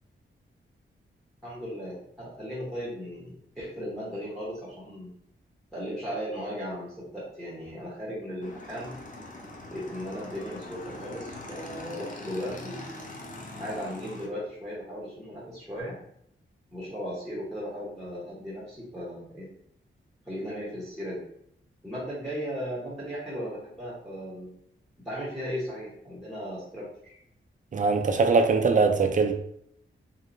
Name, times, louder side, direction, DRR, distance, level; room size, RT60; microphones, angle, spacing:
voice 1, 1.4-5.1 5.7-8.9 9.7-12.9 13.6-15.9 16.7-19.5 20.2-21.2 21.8-24.5 25.0-27.2, equal, ahead, 0.9 m, -36 dB
Motorcycle / Engine, 8.4-14.3, left 2 dB, 40° left, 0.5 m, -42 dB
voice 2, 27.7-29.3, right 4 dB, 40° right, 0.4 m, -22 dB
2.7 x 2.1 x 2.5 m
cardioid pair, 65°, 21 cm